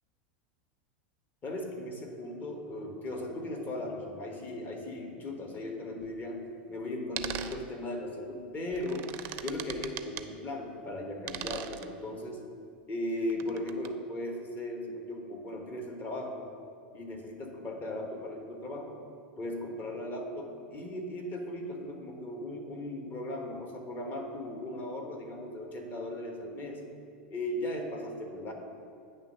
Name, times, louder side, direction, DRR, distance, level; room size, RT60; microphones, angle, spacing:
voice 1, 1.4-9.1 9.4-12.4 12.9-16.5 16.9-19.0 19.4-26.8 27.3-28.5, left 1 dB, 30° left, 2 dB, 1.2 m, -37 dB
sound 1, 6.0-6.1 7.2-7.6 8.7-10.3 11.2-11.9 13.3-13.9, right 11 dB, 45° right, 0.4 m, -39 dB
9.1 x 3.3 x 5.6 m, 2.4 s
hypercardioid pair, 95°, 6 cm